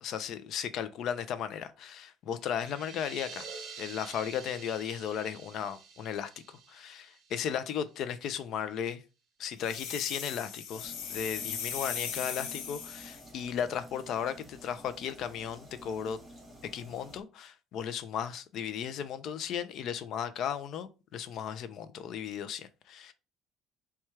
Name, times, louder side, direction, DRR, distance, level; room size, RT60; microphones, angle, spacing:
voice 1, 0.0-3.5 3.8-9.0 9.4-16.2 16.6-23.1, left 8 dB, 50° left, 0.4 m, -35 dB
sound 1, 2.4-8.0, right 5 dB, 40° right, 0.8 m, -48 dB
sound 2, 9.6-13.3, left 7 dB, 75° left, 0.8 m, -38 dB
sound 3, 10.7-17.2, equal, 5° right, 0.9 m, -51 dB
4.3 x 2.3 x 4.6 m
cardioid pair, 175°, 0 cm